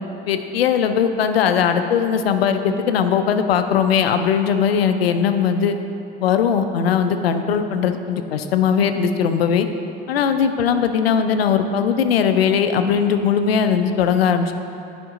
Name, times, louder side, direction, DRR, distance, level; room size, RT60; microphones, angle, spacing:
voice 1, 0.3-5.8 6.2-9.7 10.1-14.5, left 7 dB, 90° left, 8 dB, 0.5 m, -19 dB
10.0 x 5.2 x 3.7 m, 2.8 s
hypercardioid pair, 65°, 29 cm